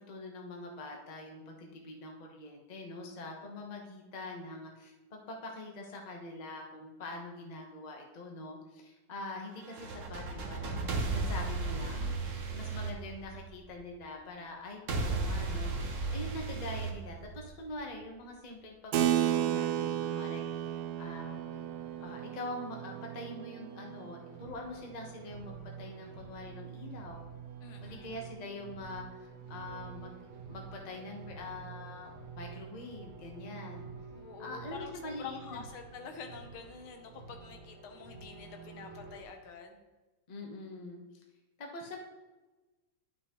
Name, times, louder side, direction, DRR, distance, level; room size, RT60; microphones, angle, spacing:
voice 1, 0.0-21.4 22.0-27.2 27.8-30.2 30.5-33.9 34.4-35.6 40.3-41.0 41.6-42.0, left 2 dB, 30° left, 1 dB, 0.7 m, -44 dB
sound 1, 9.6-13.7 14.9-17.7, right 3 dB, 50° right, 1.1 m, -35 dB
Keyboard (musical), 18.9-24.9, right 11 dB, 90° right, 0.8 m, -33 dB
sound 2, 19.7-39.2, right 6 dB, 65° right, 1.8 m, -49 dB
voice 2, 27.6-28.3 34.1-34.9 35.2-39.8, left 6 dB, 90° left, 4 dB, 1.8 m, -47 dB
11.0 x 5.8 x 3.0 m, 1.2 s
omnidirectional pair, 2.3 m